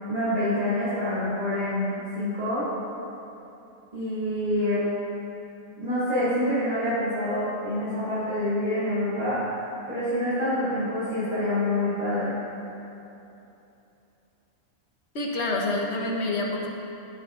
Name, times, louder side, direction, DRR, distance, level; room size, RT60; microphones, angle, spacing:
voice 1, 0.1-2.7 3.9-4.8 5.8-12.4, left 1 dB, 30° right, -13 dB, 2.3 m, -27 dB
voice 2, 15.1-16.7, left 2 dB, 55° left, -1 dB, 1.3 m, -27 dB
14.0 x 7.5 x 2.5 m, 2.9 s
omnidirectional pair, 1.4 m